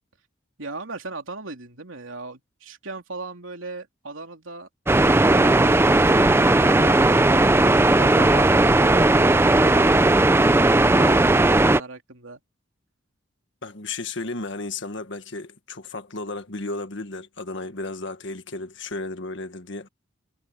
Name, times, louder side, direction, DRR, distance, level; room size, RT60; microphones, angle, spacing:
voice 1, 0.6-4.7 10.9-12.4, right 3 dB, 75° right, 3.3 m, -37 dB
sound 1, 4.9-11.8, right 2 dB, 10° right, 0.5 m, -17 dB
voice 2, 13.6-19.9, left 3 dB, 65° left, 1.8 m, -33 dB
head